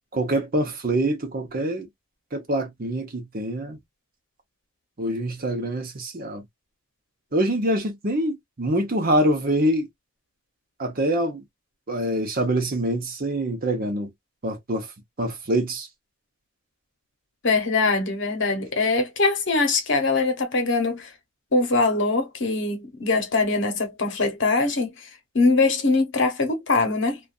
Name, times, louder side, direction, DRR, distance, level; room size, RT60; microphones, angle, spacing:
voice 1, 0.1-1.9 2.3-3.8 5.0-6.4 7.3-9.9 10.8-11.4 11.9-14.1 14.4-14.9 15.2-15.9, right 1 dB, 40° right, 0.8 m, -25 dB
voice 2, 17.4-21.1 21.5-25.1 25.3-27.2, left 3 dB, 55° left, 1.0 m, -22 dB
2.6 x 2.4 x 2.4 m
head